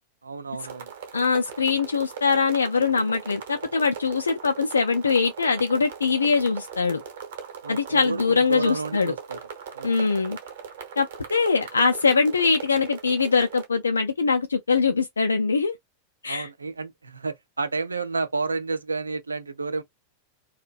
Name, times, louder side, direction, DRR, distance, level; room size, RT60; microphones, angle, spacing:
voice 1, 0.2-0.9 7.6-8.2 8.5-9.4 9.7-10.1 16.3-19.8, right 4 dB, 75° right, 0.4 m, -31 dB
sound 1, 0.6-13.7, right 7 dB, 55° right, 0.8 m, -40 dB
voice 2, 1.1-7.0 7.7-9.1 9.8-10.4 11.0-15.7 16.2-16.5, left 4 dB, 75° left, 0.3 m, -22 dB
2.5 x 2.1 x 2.4 m
figure-of-eight pair, 90°, 0 cm